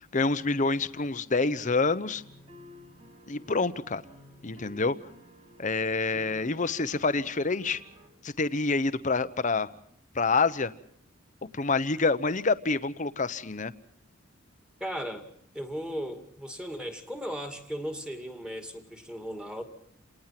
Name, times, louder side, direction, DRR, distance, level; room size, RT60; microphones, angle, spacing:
voice 1, 0.1-2.2 3.3-4.0 4.4-5.0 5.6-7.8 8.2-9.7 10.1-10.7 11.5-13.7, left 3 dB, 35° left, 13 dB, 0.9 m, -27 dB
sound 1, 2.1-8.1, left 1 dB, 30° right, 3.6 m, -53 dB
voice 2, 14.8-15.3 15.5-19.6, equal, 5° right, 6 dB, 2.4 m, -36 dB
28.5 x 19.0 x 5.9 m, 0.66 s
head